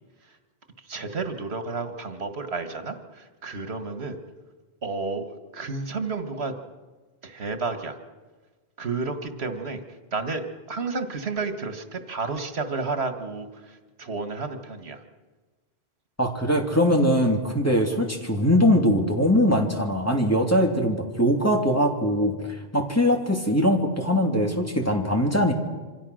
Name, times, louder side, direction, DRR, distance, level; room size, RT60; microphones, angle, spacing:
voice 1, 0.9-4.2 4.8-6.5 7.2-8.0 8.8-9.8 10.1-15.0, right 4 dB, 85° right, 7 dB, 1.9 m, -31 dB
voice 2, 16.2-22.3 22.7-25.5, equal, 15° left, 1 dB, 2.9 m, -21 dB
27.5 x 25.5 x 6.4 m, 1.3 s
omnidirectional pair, 1.1 m